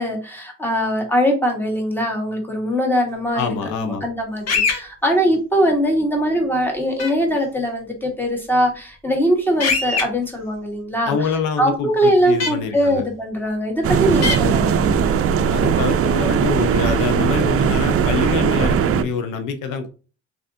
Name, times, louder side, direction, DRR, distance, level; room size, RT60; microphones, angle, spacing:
voice 1, 0.0-11.3 11.6-15.1, equal, 5° left, 1 dB, 1.7 m, -21 dB
voice 2, 3.3-4.0 11.1-11.9 12.3-13.0 15.5-19.9, left 5 dB, 90° left, 7 dB, 0.8 m, -25 dB
sound 1, 4.5-4.8 7.0-7.1 9.6-10.0 12.4-12.5 14.2-14.4, left 4 dB, 60° left, 1.3 m, -20 dB
sound 2, 13.8-19.0, right 8 dB, 50° right, 0.5 m, -19 dB
4.0 x 3.3 x 2.7 m, 0.34 s
cardioid pair, 90°, 30 cm